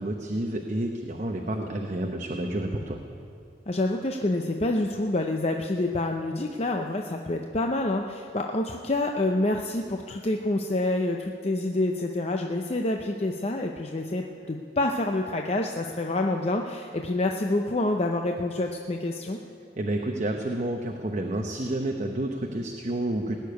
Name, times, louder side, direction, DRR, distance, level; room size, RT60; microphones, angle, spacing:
voice 1, 0.0-3.0 19.8-23.4, right 1 dB, 40° right, 2 dB, 0.9 m, -30 dB
voice 2, 3.7-19.4, left 2 dB, 35° left, 3 dB, 0.6 m, -27 dB
19.0 x 6.8 x 9.3 m, 2.7 s
head